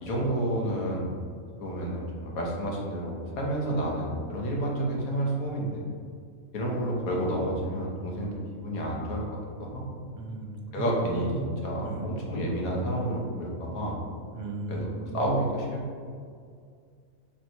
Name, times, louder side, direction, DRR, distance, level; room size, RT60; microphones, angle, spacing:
voice 1, 0.0-1.1 1.6-5.8 6.5-9.2 9.6-10.0 10.7-11.3 11.6-14.0 14.7-16.0, right 1 dB, 85° left, -2 dB, 1.3 m, -30 dB
voice 2, 10.1-11.5 11.8-12.1 14.3-15.2, right 2 dB, 70° right, 1 dB, 0.8 m, -36 dB
4.4 x 3.4 x 2.6 m, 2.2 s
omnidirectional pair, 1.4 m